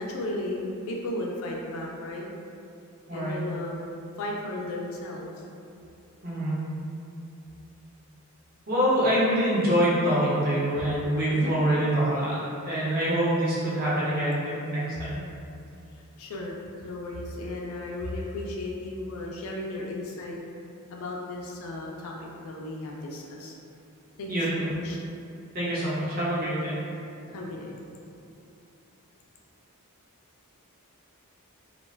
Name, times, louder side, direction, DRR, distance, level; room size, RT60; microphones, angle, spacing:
voice 1, 0.0-2.3 3.1-3.9 4.2-5.3 11.3-11.5 16.2-16.6 16.8-20.4 20.9-23.5 24.2-25.0 27.2-27.8, left 1 dB, 65° left, -2 dB, 0.3 m, -35 dB
voice 2, 6.2-6.6 8.7-12.4 12.6-15.2 24.3-24.7 25.5-26.8, right 1 dB, 45° right, -9 dB, 0.8 m, -25 dB
2.4 x 2.2 x 3.2 m, 2.6 s
head